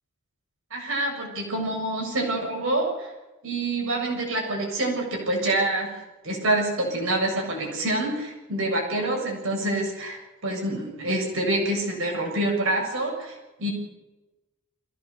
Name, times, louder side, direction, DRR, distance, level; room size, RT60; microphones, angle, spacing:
voice 1, 0.7-3.1 3.4-5.9 6.2-13.7, right 1 dB, 65° right, 0 dB, 7.1 m, -26 dB
25.5 x 16.5 x 6.9 m, 1.1 s
head